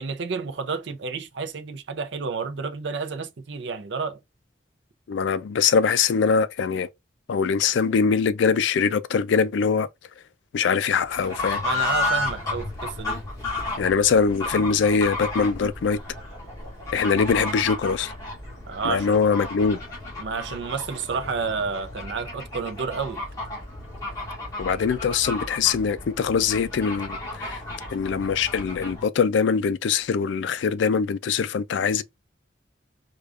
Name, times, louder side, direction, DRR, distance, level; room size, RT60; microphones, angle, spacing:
voice 1, 0.0-4.2 11.6-13.2 18.7-19.2 20.2-23.2, right 5 dB, 70° right, 0.5 m, -30 dB
voice 2, 5.1-6.9 7.3-9.9 10.5-11.6 13.8-16.0 16.9-18.1 18.8-19.8 24.6-27.6 27.9-32.0, left 5 dB, 75° left, 0.4 m, -22 dB
Fowl / Bird, 11.0-29.1, left 2 dB, 20° left, 1.6 m, -33 dB
4.8 x 2.3 x 2.4 m
head